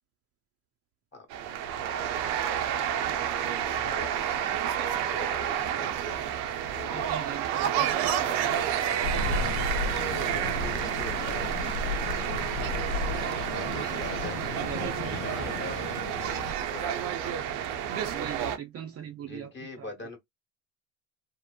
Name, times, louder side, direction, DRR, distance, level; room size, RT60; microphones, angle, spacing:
voice 1, 1.1-1.6 3.6-4.1 5.1-6.3 6.7-7.1 8.0-9.0 9.8-11.6 12.6-12.7 13.5-14.6 15.2-16.1 16.6-17.4 19.2-20.2, left 3 dB, 25° left, 1.1 m, -43 dB
sound 1, 1.3-18.6, right 9 dB, 70° right, 0.7 m, -30 dB
voice 2, 6.9-8.3 13.7-14.0 14.4-15.2 18.1-19.5 19.8-19.9, right 8 dB, 35° right, 0.5 m, -40 dB
sound 2, 9.0-16.5, left 4 dB, 85° left, 0.5 m, -34 dB
2.9 x 2.0 x 2.3 m
supercardioid pair, 95°, 42 cm